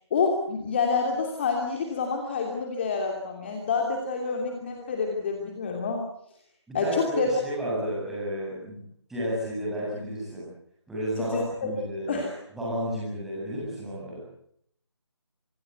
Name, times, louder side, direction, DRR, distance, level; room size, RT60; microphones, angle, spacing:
voice 1, 0.1-6.0 6.7-7.3 11.2-11.7 12.1-12.3, left 4 dB, 25° left, 2 dB, 2.9 m, -28 dB
voice 2, 6.7-8.8 9.1-10.5 10.9-12.2 12.5-14.2, right 1 dB, ahead, -7 dB, 7.7 m, -32 dB
26.5 x 21.0 x 8.2 m, 0.69 s
figure-of-eight pair, 160°, 15 cm